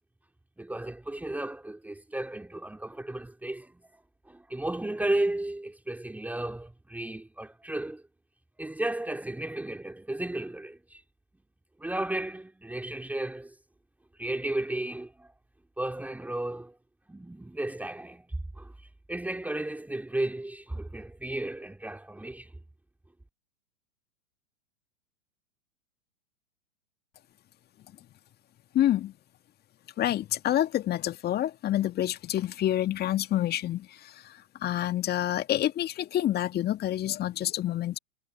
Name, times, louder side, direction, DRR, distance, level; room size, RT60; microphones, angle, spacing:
voice 1, 0.6-8.0 8.6-11.0 11.8-13.5 14.2-15.3 15.8-16.7 17.1-18.3 18.6-18.7 19.1-22.5, right 1 dB, 5° right, 3.4 m, -34 dB
voice 2, 28.7-29.1 30.0-38.0, left 12 dB, 25° left, 2.0 m, -28 dB
figure-of-eight pair, 105°, 39 cm